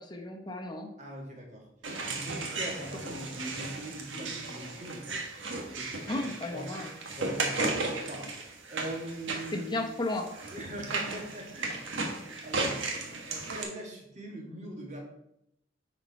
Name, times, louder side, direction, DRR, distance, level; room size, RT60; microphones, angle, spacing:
voice 1, 0.0-0.9 6.1-6.9 9.5-10.3, left 2 dB, 25° left, 3 dB, 0.9 m, -34 dB
voice 2, 1.0-1.7 2.0-5.0 5.8-6.2 6.5-6.7 7.1-9.9 10.5-12.2 12.4-12.9 13.3-15.0, right 1 dB, 40° right, -1 dB, 1.9 m, -42 dB
sound 1, 1.8-13.6, right 3 dB, 75° right, 1.3 m, -35 dB
9.9 x 4.4 x 4.1 m, 0.79 s
head